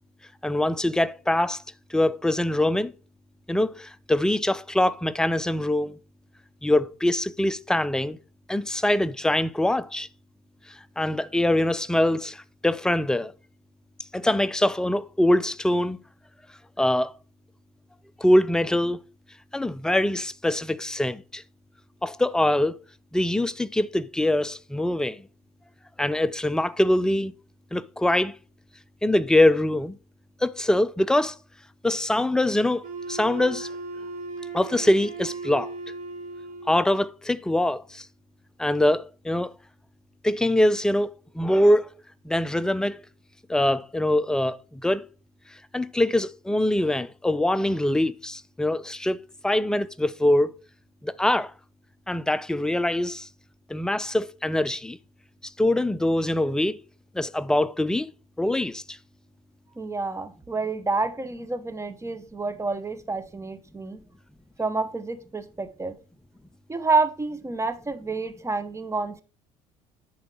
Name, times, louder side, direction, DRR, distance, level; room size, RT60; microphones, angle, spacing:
voice 1, 0.4-1.6 1.9-2.9 3.5-6.0 6.6-8.2 8.5-10.1 11.0-13.3 14.1-16.0 16.8-17.1 18.2-19.0 19.5-21.4 22.0-22.8 23.1-25.2 26.0-27.3 27.7-28.3 29.0-30.0 30.4-31.4 31.8-33.7 34.5-35.7 36.7-38.1 38.6-39.5 40.2-41.9 42.3-43.0 43.5-45.0 45.7-49.2 49.4-50.6 51.0-51.5 52.1-53.3 53.7-55.0 55.6-56.8 57.1-58.1 58.4-59.0, left 1 dB, 5° left, 0.4 m, -23 dB
Wind instrument woodwind instrument, 32.8-37.0, right 3 dB, 45° right, 2.9 m, -37 dB
voice 2, 59.8-64.0 64.6-66.0 66.7-69.2, right 3 dB, 15° right, 0.8 m, -28 dB
10.0 x 3.9 x 4.6 m
hypercardioid pair, 65°, 17 cm